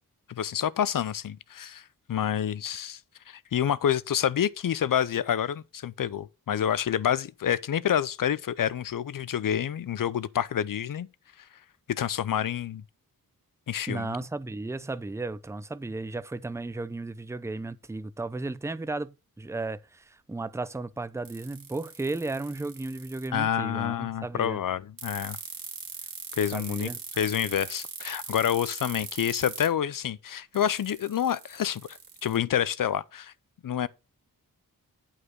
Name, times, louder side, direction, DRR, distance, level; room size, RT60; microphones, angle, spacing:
voice 1, 0.3-3.0 3.3-11.1 11.4-11.5 11.9-12.8 13.7-14.2 23.3-25.4 26.3-26.9 27.2-33.3 33.6-33.9, left 9 dB, 65° left, 0.6 m, -28 dB
voice 2, 13.9-24.6 26.5-27.0, right 2 dB, 10° right, 0.5 m, -34 dB
sound 1, 21.3-23.3 25.0-29.7 30.5-32.4, right 6 dB, 70° right, 1.9 m, -40 dB
8.7 x 4.9 x 6.3 m
wide cardioid pair, 75°, 36 cm